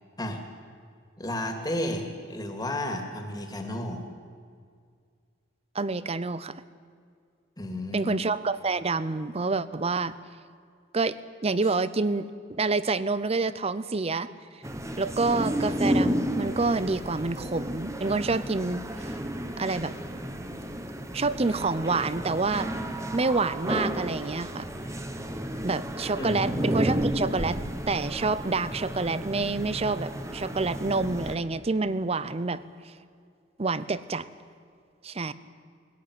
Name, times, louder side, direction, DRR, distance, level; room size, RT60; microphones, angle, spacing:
voice 1, 1.2-4.1 7.6-8.2 26.1-26.5, left 1 dB, 20° left, 4 dB, 2.5 m, -32 dB
voice 2, 5.7-6.6 7.9-10.1 10.9-11.2 11.4-14.3 15.0-18.8 19.6-19.9 21.1-22.7 23.1-24.7 25.6-27.6 27.9-32.6 33.6-34.3 35.0-35.3, right 3 dB, 35° right, 16 dB, 0.7 m, -27 dB
sound 1, 14.6-31.3, equal, 15° right, 1.3 m, -32 dB
20.5 x 16.0 x 9.7 m, 2.2 s
head